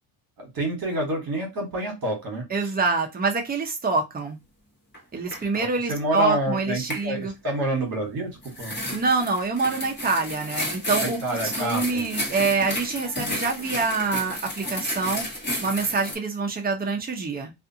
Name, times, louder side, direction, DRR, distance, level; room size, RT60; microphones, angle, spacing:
voice 1, 0.4-2.7 5.6-8.8 11.0-12.1, right 1 dB, 45° right, 1.4 m, -28 dB
voice 2, 2.5-4.4 5.1-7.3 8.9-11.2 11.4-15.3 15.6-17.5, right 4 dB, 20° right, 0.6 m, -26 dB
sound 1, 4.9-5.0 5.3-5.6 6.9-7.1 8.4-16.2, left 1 dB, 20° left, 1.2 m, -32 dB
2.5 x 2.5 x 2.6 m
cardioid pair, 130°, 48 cm